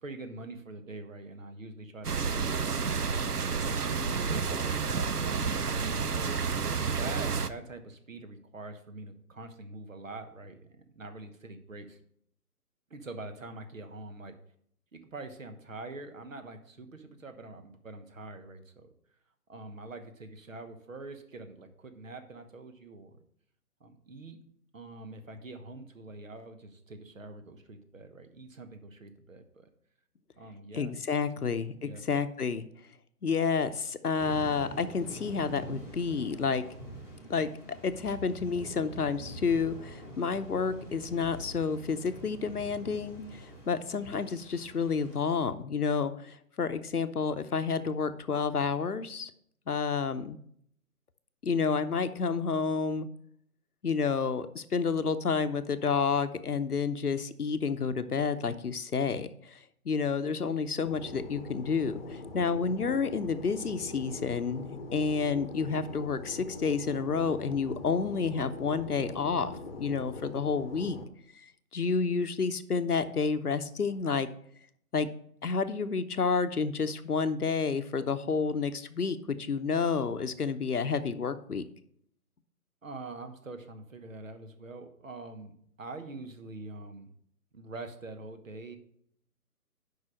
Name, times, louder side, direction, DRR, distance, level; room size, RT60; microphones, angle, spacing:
voice 1, 0.0-3.2 3.6-4.8 5.4-12.0 12.9-14.4 14.9-18.9 19.5-23.2 23.8-24.4 24.7-29.7 30.4-31.0 31.8-32.0 82.8-87.1 87.5-88.8, right 2 dB, 55° right, 8 dB, 1.3 m, -44 dB
sound 1, 2.0-7.5, right 5 dB, 80° right, 0.7 m, -30 dB
voice 2, 30.7-32.7 33.2-36.6 37.3-37.5 37.8-49.3 49.7-50.4 51.4-53.1 53.8-59.6 59.8-69.5 69.8-71.0 71.4-74.3 74.9-75.1 75.4-81.6, left 5 dB, 75° left, 11 dB, 0.8 m, -30 dB
sound 2, 34.2-45.4, right 1 dB, 5° right, 2.5 m, -45 dB
Fixed-wing aircraft airplane, 60.8-71.0, left 3 dB, 40° left, 1.0 m, -42 dB
7.7 x 5.5 x 6.4 m, 0.68 s
figure-of-eight pair, 140°, 46 cm